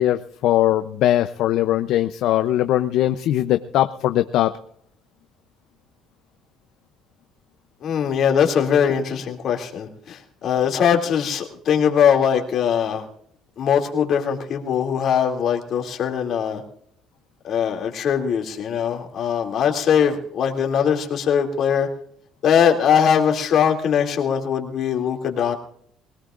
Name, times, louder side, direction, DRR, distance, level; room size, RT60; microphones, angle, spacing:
voice 1, 0.0-4.5, left 13 dB, 70° left, 10 dB, 0.6 m, -20 dB
voice 2, 7.8-13.0 13.6-16.6 17.4-21.9 22.4-25.5, left 8 dB, 55° left, 2 dB, 2.6 m, -21 dB
23.5 x 17.5 x 2.5 m, 0.66 s
cardioid pair, 115°, 0 cm